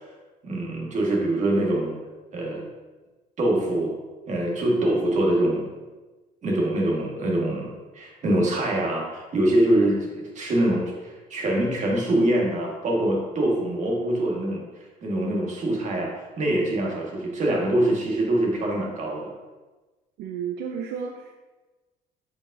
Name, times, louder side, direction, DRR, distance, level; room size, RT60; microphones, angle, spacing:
voice 1, 0.4-1.9 2.3-2.6 3.4-3.9 4.3-5.7 6.4-14.6 15.0-16.1 16.4-19.3, right 1 dB, 45° right, -2 dB, 1.7 m, -24 dB
voice 2, 20.2-21.3, right 7 dB, 80° right, 3 dB, 0.5 m, -32 dB
8.0 x 5.1 x 2.7 m, 1.2 s
cardioid pair, 110°, 17 cm